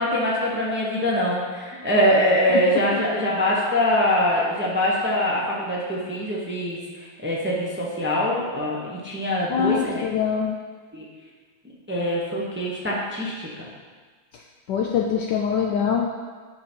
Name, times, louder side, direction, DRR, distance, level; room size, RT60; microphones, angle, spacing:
voice 1, 0.0-10.1 10.9-11.0 11.9-13.6, equal, 10° right, -5 dB, 0.7 m, -23 dB
voice 2, 9.5-10.5 14.7-16.1, left 7 dB, 75° left, 0 dB, 1.0 m, -23 dB
10.5 x 3.9 x 4.5 m, 1.5 s
omnidirectional pair, 2.3 m